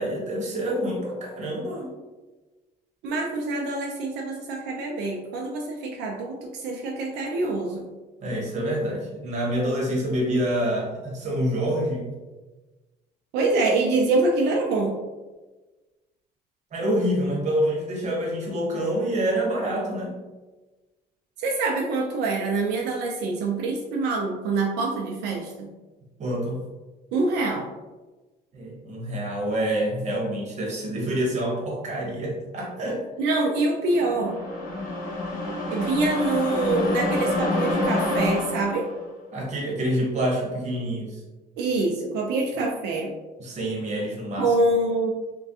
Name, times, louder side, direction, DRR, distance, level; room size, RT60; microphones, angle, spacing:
voice 1, 0.0-1.9 8.2-12.1 16.7-20.1 26.2-26.6 28.5-33.0 39.3-41.2 43.4-44.5, right 1 dB, 45° right, -1 dB, 1.0 m, -27 dB
voice 2, 3.0-7.8 13.3-15.0 21.4-25.7 27.1-27.7 33.2-34.4 35.7-38.9 41.6-43.1 44.4-45.1, right 2 dB, 85° right, 0 dB, 0.4 m, -25 dB
sound 1, 33.9-39.0, left 1 dB, 55° left, 1.1 m, -27 dB
3.3 x 2.2 x 2.7 m, 1.2 s
cardioid pair, 110°, 17 cm